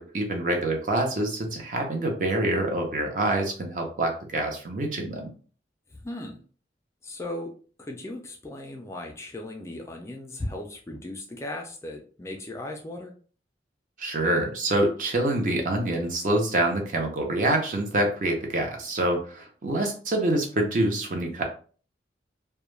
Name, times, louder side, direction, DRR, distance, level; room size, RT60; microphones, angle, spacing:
voice 1, 0.0-5.3 14.0-21.4, right 1 dB, 45° right, 2 dB, 0.6 m, -26 dB
voice 2, 5.9-6.4 7.0-7.5 7.8-13.1, left 1 dB, 15° left, 2 dB, 0.3 m, -37 dB
2.2 x 2.1 x 3.1 m, 0.41 s
head